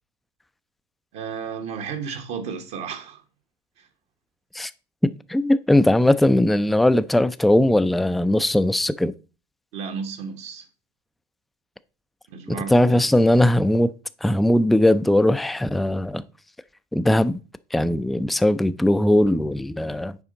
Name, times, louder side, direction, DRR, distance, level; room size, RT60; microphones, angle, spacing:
voice 1, 1.1-3.2 3.8-3.9 9.7-10.7 12.3-13.1, right 6 dB, 65° right, 1.2 m, -33 dB
voice 2, 5.0-9.1 12.7-13.9 14.2-16.2 16.9-17.4 17.7-20.2, left 1 dB, ahead, 0.3 m, -19 dB
7.1 x 4.9 x 3.9 m
hypercardioid pair, 75°, 21 cm